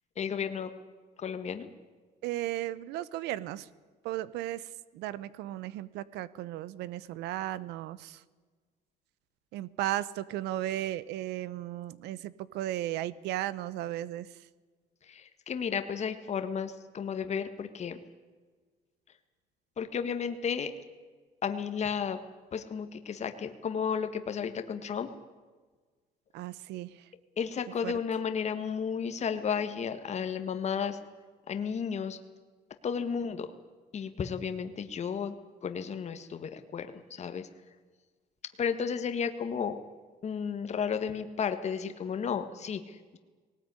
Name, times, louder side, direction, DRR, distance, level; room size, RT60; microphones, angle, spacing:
voice 1, 0.2-0.7 1.2-1.7 15.1-18.0 19.8-20.7 21.4-22.2 22.5-25.1 27.4-31.0 31.5-32.2 32.8-33.5 33.9-35.3 35.6-37.5 38.6-39.8 40.2-43.2, left 7 dB, 40° left, 8 dB, 1.6 m, -33 dB
voice 2, 2.2-3.7 4.0-4.7 4.9-8.2 9.5-14.3 26.3-27.0 27.8-28.0, right 14 dB, 90° right, 18 dB, 0.9 m, -35 dB
19.0 x 19.0 x 9.7 m, 1.4 s
cardioid pair, 110°, 17 cm